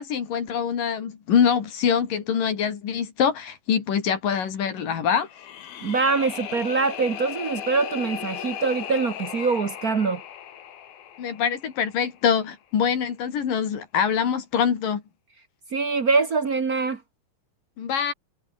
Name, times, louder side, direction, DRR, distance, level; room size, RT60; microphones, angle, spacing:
voice 1, 0.0-5.3 11.2-15.0 17.8-18.1, left 7 dB, 70° left, 4.4 m, -24 dB
sound 1, 5.2-12.3, left 10 dB, 90° left, 4.0 m, -37 dB
voice 2, 5.8-10.2 15.7-17.0, right 4 dB, 60° right, 0.9 m, -24 dB
omnidirectional pair, 4.1 m